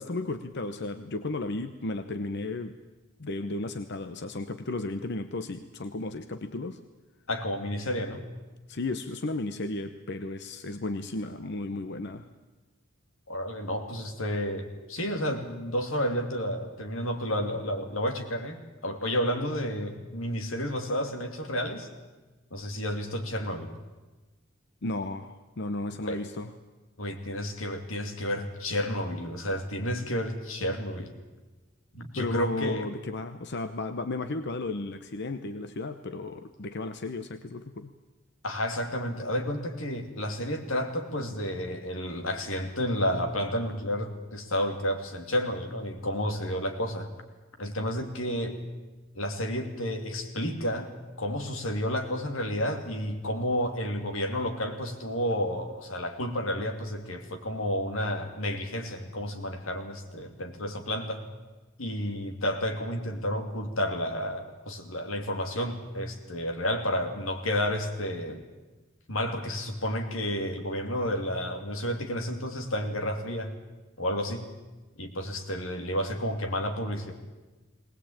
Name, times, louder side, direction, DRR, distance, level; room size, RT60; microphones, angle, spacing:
voice 1, 0.0-2.7 3.2-6.8 8.7-12.3 24.8-26.5 32.1-37.9, left 2 dB, 55° left, 9 dB, 0.8 m, -34 dB
voice 2, 7.3-8.2 13.3-21.9 22.5-23.7 26.0-26.2 27.0-31.1 31.9-32.8 38.4-47.1 47.6-48.6 49.1-61.2 61.8-68.4 69.1-73.6 74.0-74.5 75.0-77.1, equal, 90° left, 4 dB, 2.8 m, -31 dB
20.0 x 19.5 x 8.8 m, 1.2 s
head